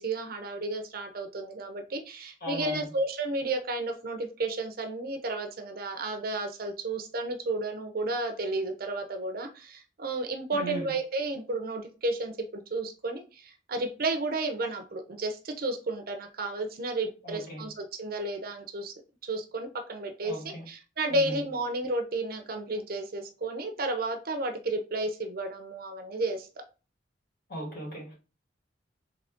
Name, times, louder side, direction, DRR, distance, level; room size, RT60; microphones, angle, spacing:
voice 1, 0.0-18.9 19.2-26.5, right 2 dB, 55° right, 0.7 m, -32 dB
voice 2, 2.4-2.9 10.5-10.9 17.2-17.7 20.2-20.7 21.1-21.4 27.5-28.1, right 1 dB, 60° left, 2.3 m, -37 dB
3.8 x 3.3 x 3.5 m
head